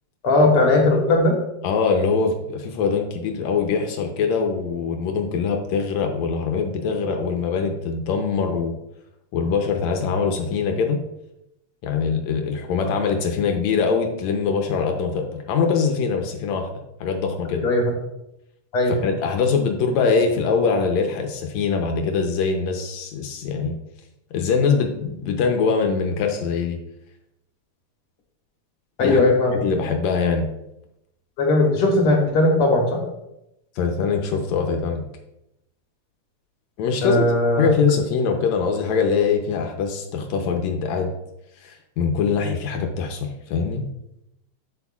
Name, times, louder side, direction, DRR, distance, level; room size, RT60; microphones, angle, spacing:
voice 1, 0.2-1.3 17.6-17.8 18.7-18.9 29.0-29.5 31.4-33.0 37.0-37.7, left 2 dB, 55° left, 0 dB, 2.0 m, -18 dB
voice 2, 1.6-8.7 9.3-11.0 11.8-16.7 17.0-17.7 18.9-23.8 24.3-26.8 29.0-29.2 29.6-30.5 33.8-35.0 36.8-41.1 41.6-43.8, left 5 dB, 75° left, 3 dB, 2.0 m, -23 dB
8.0 x 7.9 x 2.4 m, 0.85 s
omnidirectional pair, 3.4 m